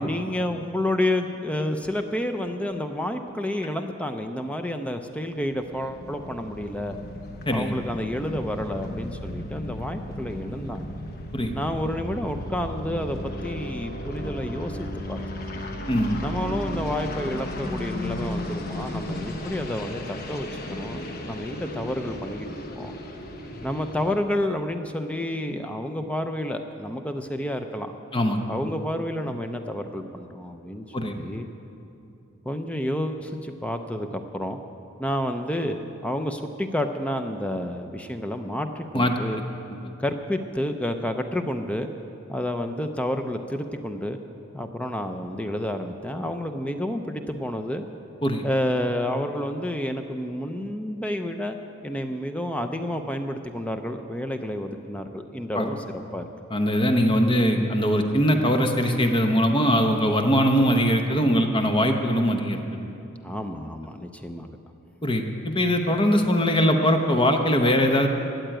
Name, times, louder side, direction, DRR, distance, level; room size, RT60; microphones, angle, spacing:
voice 1, 0.0-7.0 7.5-10.9 11.5-15.2 16.2-22.5 22.7-23.0 23.6-27.9 28.5-31.5 32.4-34.6 35.0-39.4 40.0-41.9 42.3-44.2 44.5-47.8 48.4-51.6 51.8-55.8 56.1-56.3 63.2-64.5, left 1 dB, 5° left, 6 dB, 0.5 m, -30 dB
sound 1, 5.4-24.2, left 1 dB, 50° left, 1.1 m, -35 dB
voice 2, 15.9-16.2 28.1-28.4 30.9-31.2 38.9-39.1 48.2-48.4 55.5-55.7 56.5-62.6 65.0-68.1, equal, 25° left, 4 dB, 0.9 m, -21 dB
13.5 x 7.9 x 9.0 m, 2.8 s
head